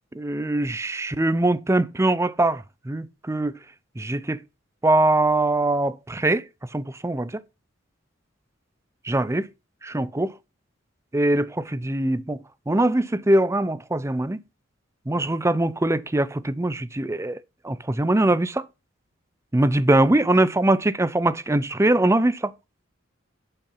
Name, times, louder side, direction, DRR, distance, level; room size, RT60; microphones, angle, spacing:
voice 1, 0.1-3.6 4.0-4.4 4.8-6.5 6.7-7.4 9.0-9.5 9.8-10.3 11.1-14.4 15.1-18.7 19.5-22.5, right 1 dB, 15° right, 0.5 m, -22 dB
10.5 x 5.7 x 5.8 m
head